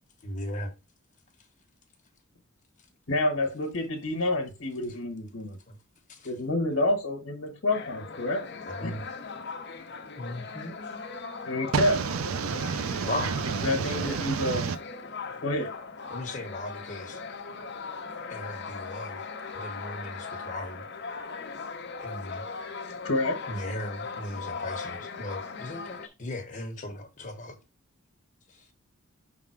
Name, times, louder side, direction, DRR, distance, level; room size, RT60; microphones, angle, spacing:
voice 1, 0.2-0.7 5.7-5.8 6.1-6.3 8.7-9.1 10.2-10.8 13.0-13.4 16.1-17.2 18.3-19.2 19.5-20.9 22.0-22.4 23.5-27.6 28.5-28.7, left 1 dB, 35° left, 1.2 m, -37 dB
voice 2, 3.1-5.6 6.2-8.5 8.8-9.0 11.5-12.0 13.6-14.7 15.4-15.7 23.0-23.4, left 1 dB, 75° left, 1.3 m, -28 dB
sound 1, 7.7-26.1, left 4 dB, 55° left, 0.8 m, -39 dB
voice 3, 11.7-14.8, right 6 dB, 75° right, 0.4 m, -30 dB
5.9 x 3.6 x 4.6 m
head